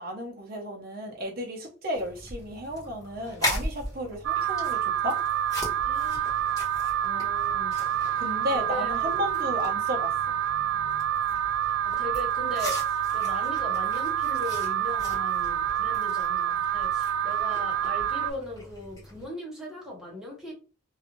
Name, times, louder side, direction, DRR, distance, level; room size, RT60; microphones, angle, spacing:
voice 1, 0.0-5.2 8.2-10.1, equal, 50° right, 1 dB, 0.6 m, -33 dB
sound 1, 1.9-19.3, left 1 dB, 20° left, 1.2 m, -40 dB
Alarm, 4.2-18.3, right 10 dB, 90° right, 0.3 m, -27 dB
voice 2, 5.8-6.4 7.0-7.7 8.5-9.1 12.0-20.5, left 1 dB, 5° right, -3 dB, 0.8 m, -39 dB
2.5 x 2.3 x 2.9 m, 0.34 s
head